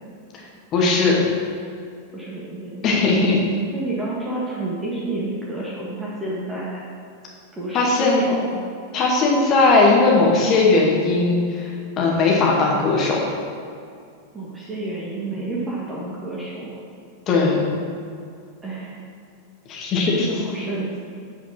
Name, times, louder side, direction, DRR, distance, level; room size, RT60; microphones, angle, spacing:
voice 1, 0.7-1.2 2.8-3.4 7.7-8.2 8.9-11.7 12.0-13.2 17.3-17.6 19.7-20.4, left 3 dB, 35° left, -2 dB, 2.1 m, -18 dB
voice 2, 2.1-2.9 3.7-6.8 7.5-8.6 14.3-16.8 18.6-19.0 20.2-21.0, right 2 dB, 15° right, -6 dB, 1.8 m, -30 dB
8.7 x 5.0 x 6.3 m, 2.3 s
figure-of-eight pair, 90°, 0 cm